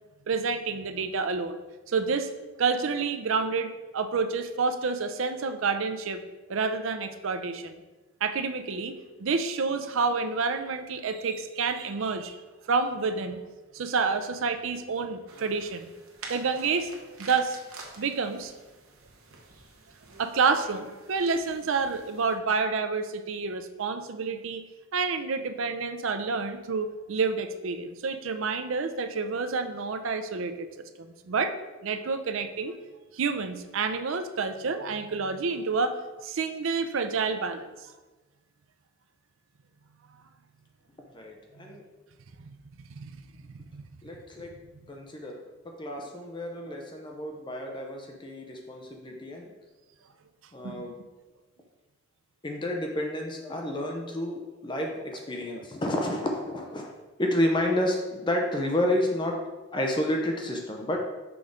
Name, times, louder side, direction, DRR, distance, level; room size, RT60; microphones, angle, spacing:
voice 1, 0.3-1.6 1.9-2.3 2.6-6.2 6.5-7.8 8.2-8.9 9.2-12.4 12.7-13.4 13.7-15.9 16.3-17.6 18.0-18.5 20.2-24.6 24.9-30.7 31.0-31.6 31.8-32.7 33.1-37.9 42.4-42.6 42.9-43.2 43.7-43.8 50.6-50.9, right 4 dB, 70° right, 9 dB, 0.5 m, -29 dB
sound 1, 15.3-22.4, right 3 dB, 90° right, 1.1 m, -48 dB
voice 2, 41.1-41.8 44.0-44.5 44.9-45.4 45.6-49.5 50.5-51.0 52.4-56.9 57.2-59.4 59.7-61.0, left 1 dB, 20° left, 1 dB, 0.6 m, -30 dB
6.1 x 3.6 x 5.0 m, 1.2 s
head